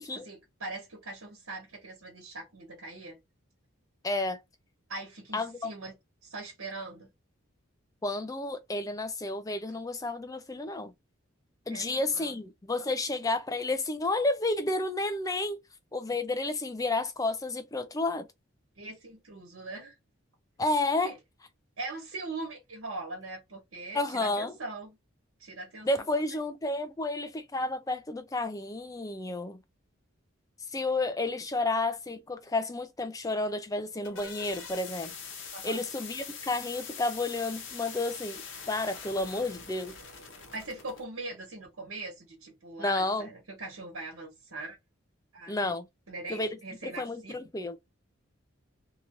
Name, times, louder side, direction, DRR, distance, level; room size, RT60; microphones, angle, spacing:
voice 1, 0.0-3.2 4.9-5.9 6.2-7.1 11.7-12.4 18.8-20.0 21.0-21.2 21.8-25.0 25.4-26.1 35.5-35.9 40.5-44.8 45.3-45.6 46.1-47.3, right 2 dB, 85° right, 1.3 m, -41 dB
voice 2, 4.0-4.4 5.3-5.7 8.0-10.9 11.7-15.6 15.9-18.3 20.6-21.1 23.9-24.5 25.8-29.6 30.7-35.1 35.6-40.0 42.8-43.3 45.5-45.9 46.3-46.5 46.8-47.8, left 2 dB, 15° left, 0.4 m, -31 dB
sound 1, 33.7-41.0, left 5 dB, 65° left, 0.8 m, -43 dB
2.8 x 2.5 x 3.0 m
head